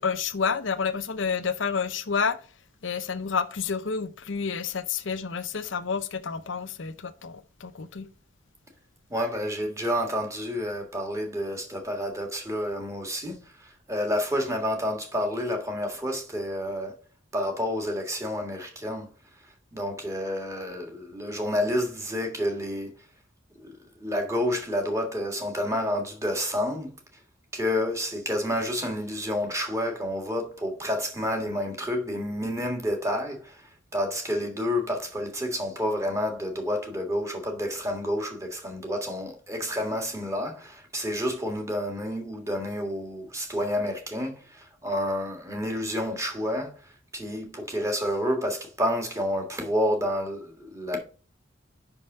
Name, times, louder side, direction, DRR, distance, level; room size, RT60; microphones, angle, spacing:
voice 1, 0.0-2.4 2.8-8.1, left 5 dB, 75° left, 0.7 m, -29 dB
voice 2, 9.1-17.0 17.3-19.1 19.7-22.9 23.6-23.7 24.0-26.9 27.5-46.7 47.1-51.0, equal, 15° right, 1.6 m, -29 dB
5.7 x 5.3 x 5.4 m
head